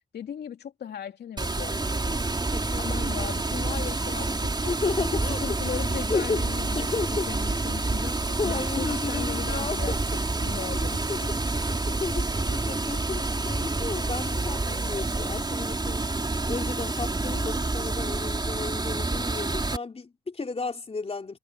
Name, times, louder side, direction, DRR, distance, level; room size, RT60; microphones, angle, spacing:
voice 1, 0.1-2.4 2.8-4.7 5.1-6.9 7.3-8.1 8.4-11.3, left 9 dB, 70° left, 3.0 m, -38 dB
Water, 1.4-19.8, right 2 dB, 25° right, 4.3 m, -28 dB
voice 2, 2.5-3.3 4.6-5.6 6.1-6.4 6.8-7.3 8.4-10.0 10.8-11.4 11.7-16.0 16.5-21.4, left 4 dB, 35° left, 3.4 m, -33 dB
supercardioid pair, 55°, 18 cm